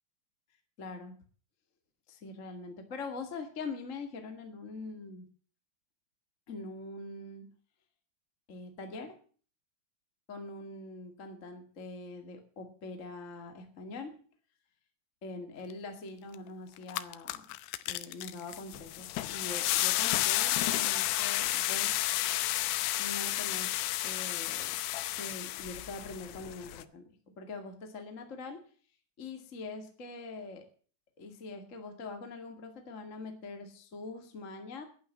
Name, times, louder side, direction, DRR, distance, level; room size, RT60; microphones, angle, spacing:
voice 1, 0.8-1.1 2.1-5.3 6.5-7.5 8.5-9.2 10.3-14.1 15.2-17.4 17.9-22.2 23.0-24.7 25.2-27.1 27.4-28.6 29.2-30.6 31.2-34.8, left 3 dB, 35° left, 5 dB, 1.2 m, -43 dB
sound 1, 16.3-16.4 16.8-26.8, left 16 dB, 80° left, 2.7 m, -31 dB
12.0 x 11.0 x 7.4 m, 0.42 s
omnidirectional pair, 5.0 m